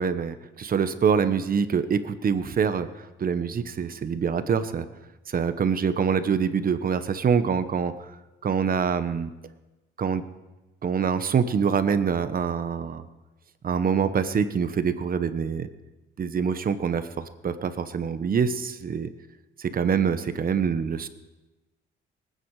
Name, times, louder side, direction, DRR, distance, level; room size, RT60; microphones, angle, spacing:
voice 1, 0.0-4.8 5.3-8.1 8.4-9.3 10.0-10.2 10.8-13.1 13.6-15.7 16.2-19.1 19.6-21.1, right 6 dB, 45° right, 11 dB, 1.1 m, -25 dB
23.5 x 9.4 x 4.8 m, 1.1 s
cardioid pair, 90°, 20 cm